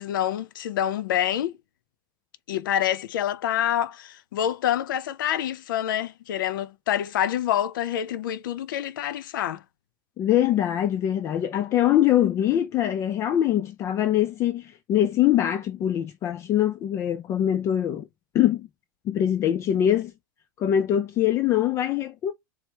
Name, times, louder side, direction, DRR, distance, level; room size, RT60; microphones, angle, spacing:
voice 1, 0.0-1.6 2.5-9.6, left 11 dB, 80° left, 0.6 m, -27 dB
voice 2, 10.2-18.1 18.3-18.7 19.1-20.1 20.6-22.3, left 11 dB, 25° left, 0.3 m, -23 dB
4.5 x 2.1 x 2.8 m
supercardioid pair, 150°, 11 cm